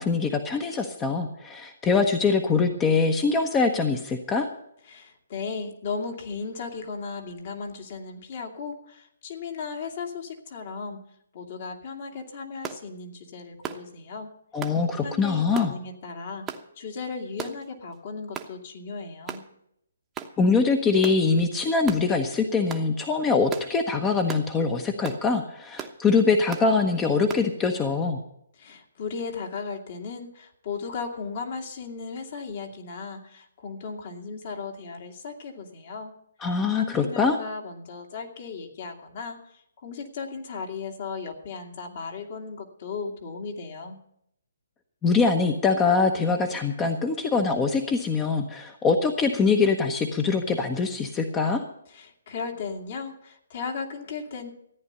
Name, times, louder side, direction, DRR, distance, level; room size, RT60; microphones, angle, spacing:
voice 1, 0.0-4.5 14.5-15.7 20.4-28.2 36.4-37.4 45.0-51.6, left 4 dB, 15° left, 5 dB, 1.0 m, -23 dB
voice 2, 4.9-11.0 11.3-14.3 14.6-14.7 15.0-16.5 16.8-19.4 28.6-36.1 36.4-44.0 51.9-54.5, left 5 dB, 50° left, 3 dB, 2.3 m, -36 dB
sound 1, 12.6-12.8 13.6-13.9 14.6-14.8 15.5-15.7 16.5-16.7 17.4-17.6 18.3-18.5 19.3-19.5 20.1-20.3 21.0-21.2 21.9-22.0 22.7-22.9 23.5-23.7 24.3-24.5 25.0-25.2 25.8-26.0 26.5-26.7 27.3-27.5, right 8 dB, 15° right, 1.0 m, -36 dB
14.5 x 9.5 x 6.8 m, 0.75 s
hypercardioid pair, 150°, 0 cm